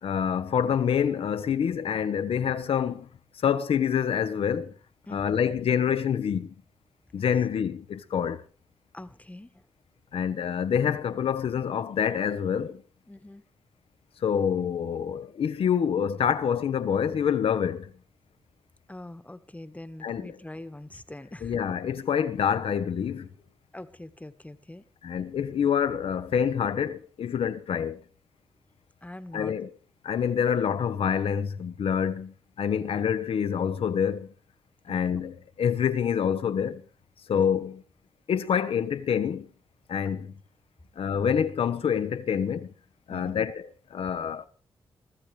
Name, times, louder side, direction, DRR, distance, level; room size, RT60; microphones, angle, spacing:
voice 1, 0.0-3.1 3.4-4.7 5.1-6.5 7.1-8.4 10.1-12.8 14.2-17.9 20.0-20.4 21.4-23.3 25.0-28.0 29.3-29.7 30.0-34.3 34.9-36.8 37.3-37.8 38.3-39.5 39.9-40.4 41.0-42.7 43.1-43.7 43.9-44.5, left 8 dB, 75° left, 1.1 m, -26 dB
voice 2, 8.9-9.6 13.1-13.4 18.9-21.6 23.7-24.8 29.0-29.5 34.9-35.2 37.3-37.4 43.1-43.4, left 1 dB, 15° left, 1.4 m, -43 dB
23.0 x 14.0 x 3.3 m
cardioid pair, 50°, 10 cm